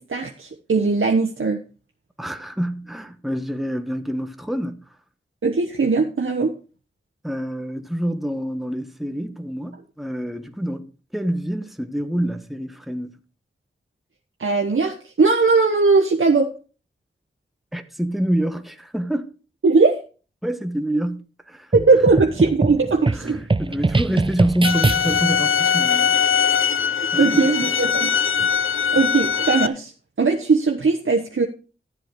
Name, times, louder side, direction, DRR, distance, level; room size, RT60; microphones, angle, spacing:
voice 1, 0.0-1.6 5.4-6.5 14.4-16.5 19.6-20.0 21.7-23.4 26.3-26.5 26.8-28.1 28.9-29.9 30.2-31.5, right 4 dB, 80° right, 1.1 m, -19 dB
voice 2, 2.2-4.8 7.2-13.2 17.7-19.3 20.4-21.7 23.1-26.2 27.1-27.7 28.4-28.5, right 1 dB, ahead, 1.1 m, -27 dB
sound 1, 21.7-25.4, right 3 dB, 25° right, 0.5 m, -23 dB
sound 2, 24.6-29.7, left 7 dB, 80° left, 0.5 m, -21 dB
12.0 x 7.8 x 4.7 m
wide cardioid pair, 65°, 21 cm